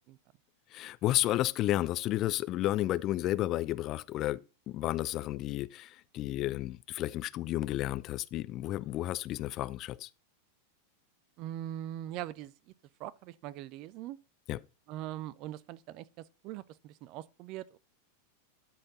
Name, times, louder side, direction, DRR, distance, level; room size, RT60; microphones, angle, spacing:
voice 1, 0.7-4.4 4.7-10.1 14.5-14.6, left 15 dB, 35° left, 0.4 m, -32 dB
voice 2, 11.4-12.7 13.0-14.2 14.9-17.8, right 13 dB, 40° right, 0.5 m, -42 dB
12.5 x 4.3 x 4.0 m
figure-of-eight pair, 90°, 0 cm